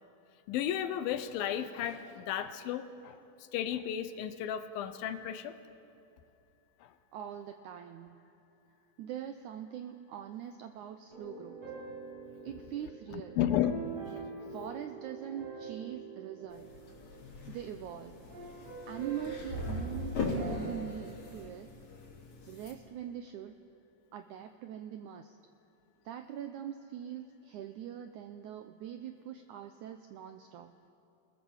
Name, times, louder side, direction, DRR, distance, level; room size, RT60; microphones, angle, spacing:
voice 1, 0.5-3.2 3.5-5.6 6.8-6.9 13.1-13.8 17.2-17.6, left 10 dB, 75° left, 10 dB, 2.5 m, -34 dB
voice 2, 7.1-8.2 9.0-11.6 12.4-13.4 14.5-16.7 17.5-18.2 18.9-21.7 22.5-23.6 24.1-25.4 26.0-30.7, right 10 dB, 90° right, 7 dB, 1.7 m, -42 dB
sound 1, 11.1-17.7 18.3-20.9, right 4 dB, 50° right, 9.1 m, -45 dB
sound 2, 16.5-22.7, left 2 dB, 50° left, 4.4 m, -40 dB
27.5 x 19.0 x 7.2 m, 2.8 s
omnidirectional pair, 4.4 m